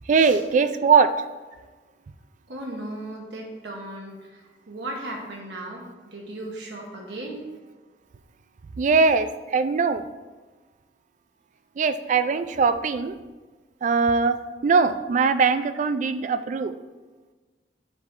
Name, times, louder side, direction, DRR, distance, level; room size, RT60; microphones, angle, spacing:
voice 1, 0.1-1.1 8.8-10.1 11.8-13.1 13.8-16.7, right 5 dB, 45° right, 12 dB, 0.3 m, -21 dB
voice 2, 2.5-7.4, right 1 dB, 85° right, -1 dB, 1.0 m, -36 dB
7.2 x 3.6 x 4.2 m, 1.3 s
head